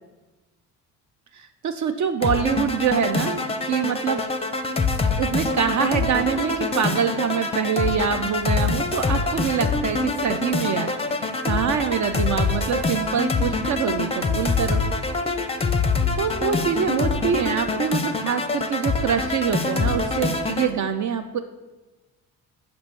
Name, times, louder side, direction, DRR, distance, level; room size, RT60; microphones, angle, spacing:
voice 1, 1.3-4.2 5.2-14.8 16.2-21.4, right 7 dB, 45° right, 8 dB, 0.4 m, -25 dB
sound 1, 2.2-20.7, left 3 dB, 15° left, 0.5 m, -25 dB
6.0 x 5.1 x 3.2 m, 1.2 s
supercardioid pair, 65°, 42 cm